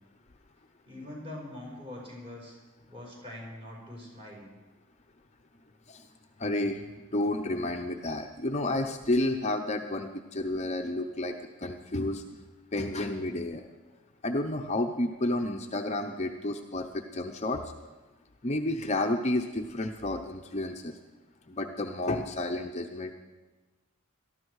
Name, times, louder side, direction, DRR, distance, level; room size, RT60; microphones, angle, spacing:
voice 1, 0.9-2.6 2.9-4.5, left 1 dB, 25° right, -2 dB, 4.8 m, -43 dB
voice 2, 6.4-6.8 7.1-12.2 12.7-13.6 14.2-17.6 18.4-20.9 21.5-23.1, left 1 dB, 30° left, 4 dB, 0.7 m, -31 dB
18.0 x 13.0 x 4.8 m, 1.2 s
head